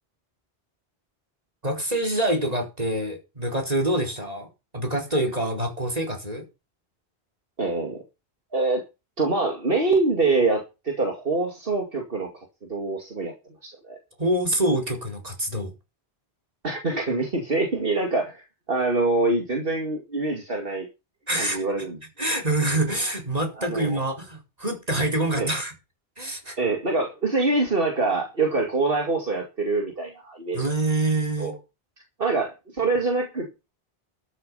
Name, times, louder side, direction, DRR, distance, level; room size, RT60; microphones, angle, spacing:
voice 1, 1.6-4.5 4.7-6.5 14.2-15.7 21.3-21.6 22.2-25.7 26.2-26.6 30.5-31.5, right 1 dB, 35° right, 4.6 m, -26 dB
voice 2, 7.6-8.0 8.5-8.8 9.2-12.3 12.7-13.3 13.6-14.0 16.6-18.4 18.7-20.9 21.4-22.0 23.6-24.0 25.4-25.5 26.6-30.6 31.4-31.6 32.2-33.7, right 3 dB, 60° right, 2.5 m, -25 dB
13.0 x 8.9 x 5.7 m
omnidirectional pair, 1.1 m